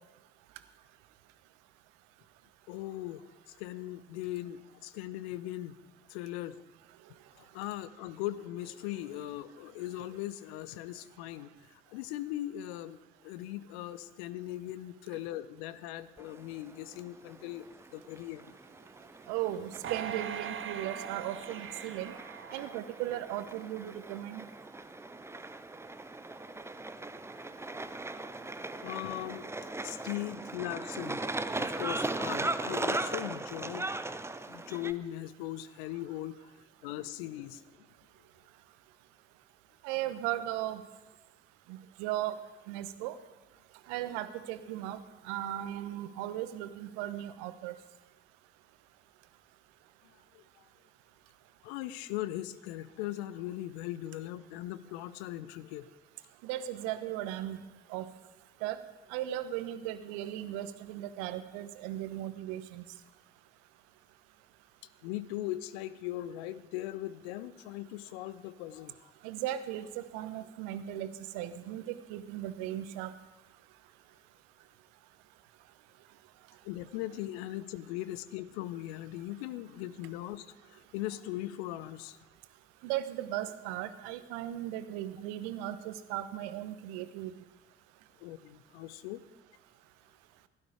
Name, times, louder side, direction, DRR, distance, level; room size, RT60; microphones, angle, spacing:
voice 1, 2.7-5.8 6.1-6.6 7.4-13.0 13.2-17.7 17.9-18.5 28.8-29.5 29.8-31.2 31.5-33.9 34.5-37.9 50.3-50.7 51.6-55.9 65.0-69.1 76.6-82.2 88.2-89.2, left 14 dB, 65° left, 15 dB, 0.8 m, -39 dB
sound 1, 16.2-34.9, right 2 dB, 10° right, 0.7 m, -39 dB
voice 2, 19.3-22.1 22.5-24.5 39.8-40.8 41.7-42.4 42.7-43.1 43.9-47.7 56.4-57.6 57.9-58.1 58.6-58.8 59.1-62.8 69.2-71.1 71.3-73.1 82.8-87.3, right 13 dB, 65° right, 12 dB, 1.1 m, -37 dB
sound 2, 19.8-23.3 23.8-23.9, right 8 dB, 35° right, 1.0 m, -41 dB
16.0 x 12.0 x 4.9 m, 1.1 s
figure-of-eight pair, 50°, 34 cm